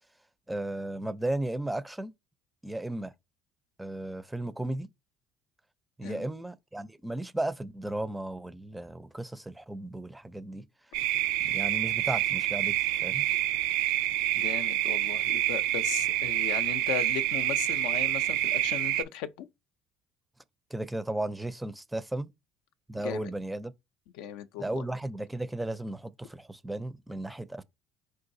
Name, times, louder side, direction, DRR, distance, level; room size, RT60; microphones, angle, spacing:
voice 1, 0.5-2.1 2.6-3.1 3.8-4.9 6.0-10.6 11.4-13.2 20.7-22.3 22.9-23.7 24.6-27.6, right 1 dB, 5° right, 0.4 m, -35 dB
sound 1, 10.9-19.0, right 15 dB, 85° right, 0.3 m, -27 dB
voice 2, 14.4-19.5 22.9-23.3 24.1-24.8, left 10 dB, 85° left, 0.4 m, -37 dB
4.5 x 3.8 x 2.6 m
supercardioid pair, 100°, 0 cm